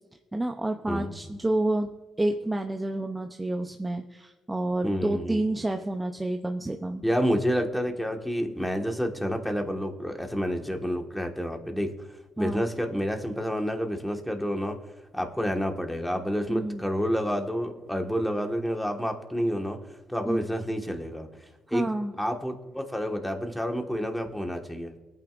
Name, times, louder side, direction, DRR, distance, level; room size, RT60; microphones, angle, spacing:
voice 1, 0.3-7.0 12.4-12.7 16.5-16.8 20.3-20.5 21.7-22.1, right 1 dB, 15° right, 5 dB, 0.7 m, -29 dB
voice 2, 4.8-5.4 7.0-14.8 15.1-19.8 20.1-21.3 21.7-21.9 22.2-24.9, equal, 5° left, 4 dB, 1.6 m, -29 dB
23.5 x 9.1 x 2.5 m, 1.2 s
cardioid pair, 90°, 0 cm